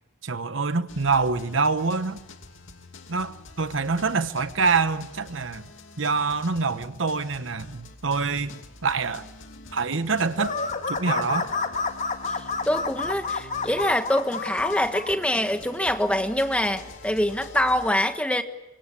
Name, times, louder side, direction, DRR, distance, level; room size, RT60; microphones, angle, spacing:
voice 1, 0.2-2.2 3.1-5.6 6.0-9.3 9.7-10.6 10.9-11.5, right 4 dB, 65° right, 1.0 m, -25 dB
sound 1, 0.9-17.9, left 3 dB, 65° left, 2.7 m, -46 dB
sound 2, 10.4-15.1, left 4 dB, 35° left, 2.0 m, -29 dB
voice 2, 12.3-18.4, left 1 dB, 5° left, 1.4 m, -25 dB
25.5 x 25.0 x 8.4 m
head